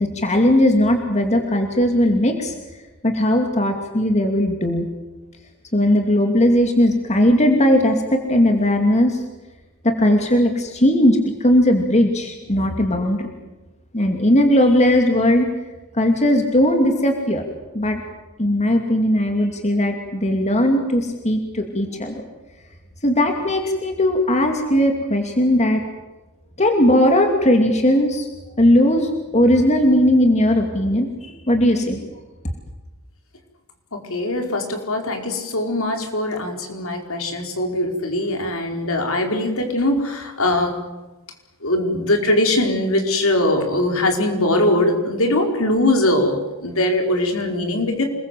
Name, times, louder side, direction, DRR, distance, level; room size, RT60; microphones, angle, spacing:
voice 1, 0.0-2.5 3.0-4.9 5.7-9.2 9.8-13.3 13.9-15.5 15.9-17.4 17.7-18.0 18.4-22.2 23.0-25.8 26.6-28.3 28.6-32.0, left 1 dB, 30° left, 4 dB, 2.7 m, -18 dB
voice 2, 33.9-40.8 41.6-48.0, left 1 dB, 65° left, 3 dB, 4.8 m, -21 dB
28.5 x 21.5 x 7.7 m, 1.1 s
head